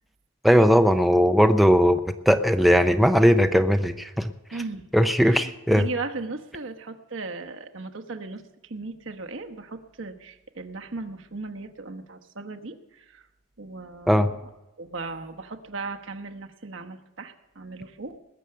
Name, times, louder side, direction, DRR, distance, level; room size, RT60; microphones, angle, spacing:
voice 1, 0.4-2.0 2.3-4.3 4.9-5.9 14.1-14.3, equal, ahead, 7 dB, 0.4 m, -18 dB
voice 2, 4.5-4.9 5.2-13.2 13.6-14.4 14.8-18.2, right 3 dB, 75° right, 4 dB, 1.1 m, -37 dB
20.0 x 8.0 x 6.7 m, 1.0 s
head